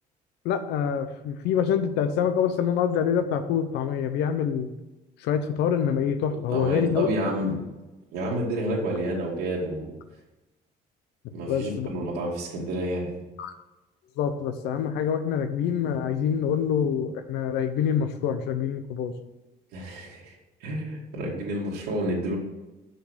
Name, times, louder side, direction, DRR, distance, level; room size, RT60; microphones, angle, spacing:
voice 1, 0.4-4.7 5.2-7.1 11.5-11.9 13.4-13.5 14.2-19.1, left 8 dB, 85° left, 10 dB, 0.9 m, -26 dB
voice 2, 6.3-7.6 8.1-10.0 11.3-13.2 19.7-22.4, right 1 dB, 90° right, -4 dB, 2.4 m, -30 dB
6.7 x 6.4 x 6.5 m, 1.1 s
cardioid pair, 110°, 17 cm